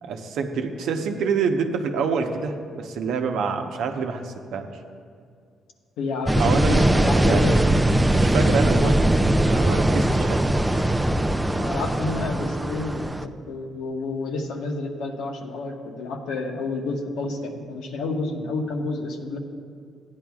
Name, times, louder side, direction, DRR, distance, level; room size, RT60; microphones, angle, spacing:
voice 1, 0.0-4.7 6.4-7.5 8.1-9.0 9.2-10.4, right 5 dB, 80° right, 5 dB, 0.8 m, -27 dB
voice 2, 6.0-7.6 8.7-8.9 11.6-19.4, left 3 dB, 90° left, 2 dB, 1.1 m, -29 dB
sound 1, 6.3-13.2, right 1 dB, 10° right, 0.4 m, -20 dB
15.5 x 9.8 x 2.4 m, 2.2 s
cardioid pair, 90°, 0 cm